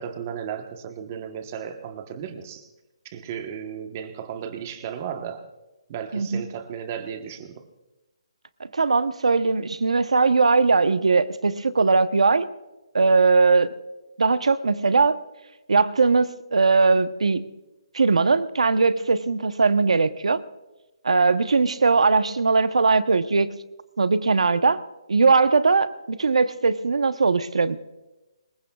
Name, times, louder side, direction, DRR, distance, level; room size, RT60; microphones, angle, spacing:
voice 1, 0.0-2.7 3.0-5.5 5.9-7.7, right 8 dB, 25° right, 7 dB, 1.2 m, -35 dB
voice 2, 8.6-12.5 12.9-13.7 14.2-15.2 15.7-17.5 17.9-20.4 21.0-23.5 24.0-24.8 25.1-27.8, right 4 dB, 90° right, 12 dB, 0.9 m, -20 dB
25.5 x 21.5 x 2.4 m, 1.0 s
hypercardioid pair, 170°, 3 cm